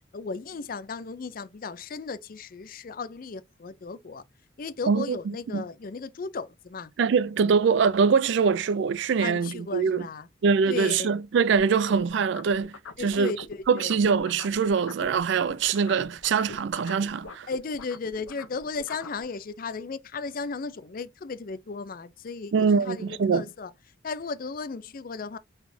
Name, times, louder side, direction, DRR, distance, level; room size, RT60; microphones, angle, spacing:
voice 1, 0.1-4.2 4.6-6.9 9.2-10.3 10.7-11.1 13.0-14.0 17.5-23.7 24.0-25.4, left 4 dB, 45° left, 0.4 m, -35 dB
voice 2, 4.8-5.6 7.0-10.1 10.4-13.3 13.7-17.5 22.5-23.4, right 5 dB, 60° right, 0.3 m, -23 dB
sound 1, 11.5-15.2 15.4-19.2, left 4 dB, 90° left, 0.7 m, -44 dB
4.1 x 3.8 x 2.6 m
head